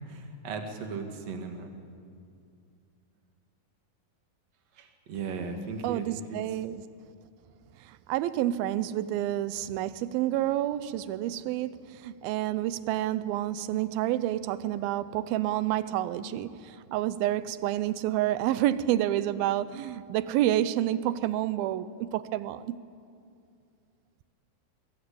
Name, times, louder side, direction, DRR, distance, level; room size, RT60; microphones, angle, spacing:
voice 1, 0.1-1.7 4.8-6.4, right 4 dB, 50° right, 4 dB, 3.0 m, -37 dB
voice 2, 5.8-6.8 7.9-22.8, right 13 dB, 85° right, 15 dB, 2.6 m, -29 dB
24.0 x 22.5 x 8.6 m, 2.4 s
omnidirectional pair, 4.2 m